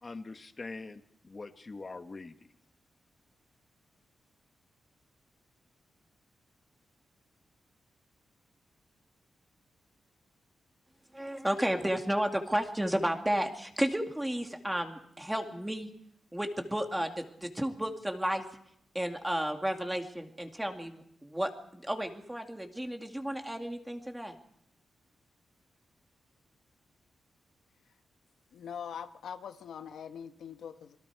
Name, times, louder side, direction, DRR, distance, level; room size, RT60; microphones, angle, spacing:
voice 1, 0.0-2.5, left 3 dB, 30° left, 8 dB, 1.4 m, -43 dB
voice 2, 11.1-15.9 16.3-18.4 18.9-24.4, right 1 dB, 5° right, 4 dB, 2.1 m, -32 dB
voice 3, 28.5-31.0, left 7 dB, 90° left, 8 dB, 1.3 m, -42 dB
26.5 x 22.0 x 4.7 m, 0.70 s
wide cardioid pair, 145°, 0 cm